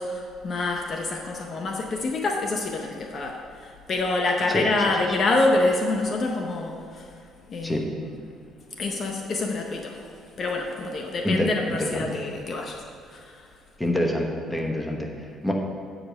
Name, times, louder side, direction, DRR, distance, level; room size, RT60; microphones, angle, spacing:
voice 1, 0.0-3.4 3.9-6.8 7.5-8.2 8.8-10.0 10.4-12.7, left 2 dB, 45° left, 2 dB, 0.7 m, -26 dB
voice 2, 4.5-5.2 7.6-7.9 11.2-12.2 13.8-15.5, left 1 dB, 10° left, 1 dB, 1.1 m, -27 dB
8.3 x 5.0 x 6.3 m, 2.4 s
cardioid pair, 115°, 0 cm